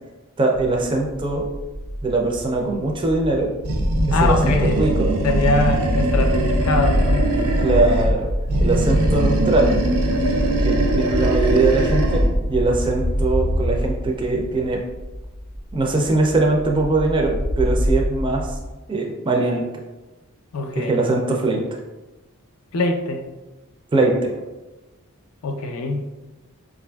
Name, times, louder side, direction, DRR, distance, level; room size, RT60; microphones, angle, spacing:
voice 1, 0.4-1.4 2.0-3.5 4.2-5.1 7.6-8.3 8.6-9.7 10.6-14.8 15.7-18.5 18.9-19.6 20.8-21.6 23.9-24.3, right 2 dB, 20° right, 0 dB, 0.4 m, -21 dB
sound 1, 0.5-18.8, equal, 30° left, 0.5 m, -28 dB
Animal, 3.6-8.2 8.5-12.4, right 1 dB, 85° right, 0.5 m, -20 dB
voice 2, 4.1-4.9 5.2-7.3 20.5-21.0 22.7-23.2 25.4-26.0, left 2 dB, 80° left, 4 dB, 0.4 m, -23 dB
4.9 x 2.4 x 2.2 m, 1.1 s
head